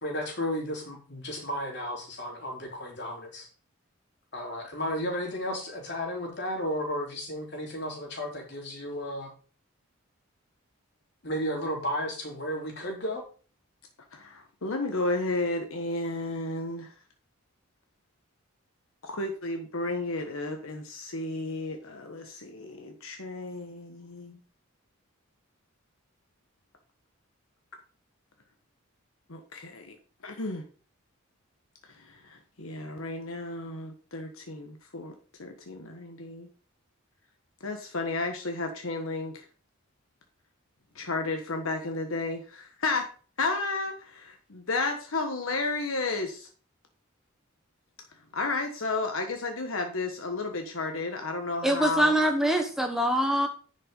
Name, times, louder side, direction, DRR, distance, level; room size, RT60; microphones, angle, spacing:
voice 1, 0.0-3.5 4.3-9.3 11.2-13.2, equal, 50° left, -1 dB, 3.7 m, -33 dB
voice 2, 14.1-16.9 19.0-24.4 29.3-29.9 30.2-30.6 32.1-35.1 35.4-36.5 37.6-39.4 40.9-43.1 43.4-46.5 48.3-52.2, left 3 dB, 70° left, 4 dB, 1.3 m, -32 dB
voice 3, 51.6-53.5, right 1 dB, ahead, 4 dB, 1.0 m, -24 dB
10.5 x 5.6 x 5.3 m, 0.39 s
head